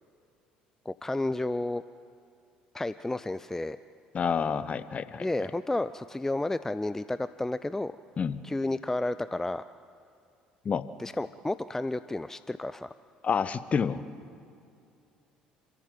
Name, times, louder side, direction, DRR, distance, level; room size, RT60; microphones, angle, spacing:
voice 1, 0.9-1.8 2.7-3.8 5.2-7.9 8.4-9.6 11.0-12.9, left 2 dB, 10° left, 14 dB, 0.5 m, -31 dB
voice 2, 4.1-5.2 8.2-8.4 10.6-10.9 13.2-14.0, left 6 dB, 35° left, 14 dB, 0.9 m, -28 dB
27.0 x 14.0 x 7.6 m, 2.4 s
figure-of-eight pair, 55°, 4 cm